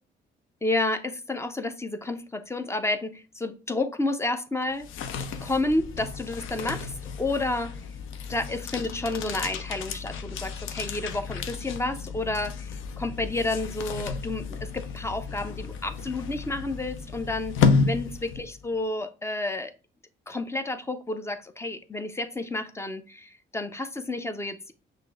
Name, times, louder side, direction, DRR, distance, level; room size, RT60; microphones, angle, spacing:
voice 1, 0.6-4.9 5.4-7.8 8.3-19.7 20.3-24.7, left 2 dB, 15° left, 10 dB, 0.4 m, -30 dB
sound 1, 4.6-18.7, left 5 dB, 85° left, 0.5 m, -31 dB
5.8 x 2.5 x 2.4 m, 0.34 s
cardioid pair, 90°, 20 cm